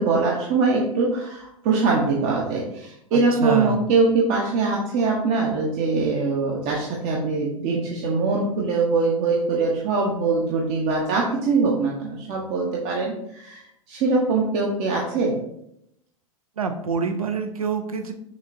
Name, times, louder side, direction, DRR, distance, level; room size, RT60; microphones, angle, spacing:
voice 1, 0.0-15.4, right 4 dB, 40° right, -2 dB, 0.8 m, -22 dB
voice 2, 3.4-3.8 16.6-18.1, right 5 dB, 85° right, 7 dB, 0.6 m, -26 dB
6.1 x 2.9 x 2.6 m, 0.77 s
hypercardioid pair, 100°, 18 cm